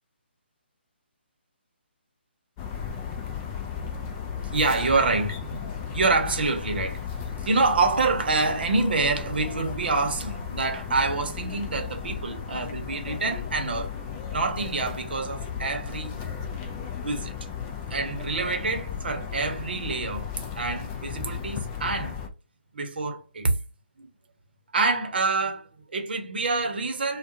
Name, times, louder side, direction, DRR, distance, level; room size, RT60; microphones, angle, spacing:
sound 1, 2.6-22.3, left 7 dB, 20° left, 0.4 m, -35 dB
voice 1, 4.5-7.0 7.4-13.9 14.3-16.1 17.0-17.3 17.9-22.2 22.7-23.5 24.0-24.1 24.7-27.2, right 3 dB, 60° right, 0.8 m, -26 dB
2.3 x 2.2 x 2.7 m
figure-of-eight pair, 145°, 6 cm